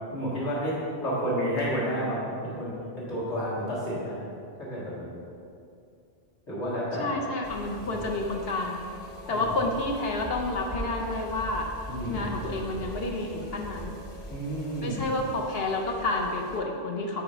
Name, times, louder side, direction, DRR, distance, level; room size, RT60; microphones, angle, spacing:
voice 1, 0.1-4.2 4.6-5.2 6.5-7.2 7.8-8.0 9.3-9.6 11.9-12.4 14.3-15.1, equal, 80° left, -8 dB, 2.2 m, -31 dB
voice 2, 7.0-8.8 9.3-11.7 12.1-13.9 14.8-17.2, left 2 dB, 65° left, 1 dB, 0.8 m, -30 dB
sound 1, 7.4-16.6, equal, 40° left, 0.5 m, -42 dB
4.8 x 4.8 x 5.4 m, 2.5 s
omnidirectional pair, 1.1 m